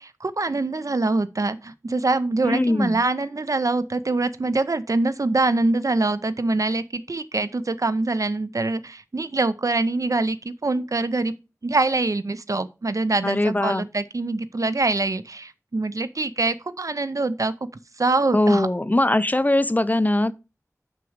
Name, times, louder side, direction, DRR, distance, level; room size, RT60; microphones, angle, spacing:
voice 1, 0.0-11.3 11.6-17.5 18.0-18.7, right 2 dB, 70° right, 0.5 m, -24 dB
voice 2, 2.4-3.0 13.2-13.8 18.3-20.3, left 1 dB, 30° left, 0.5 m, -21 dB
6.2 x 6.0 x 4.7 m
wide cardioid pair, 45°, 6 cm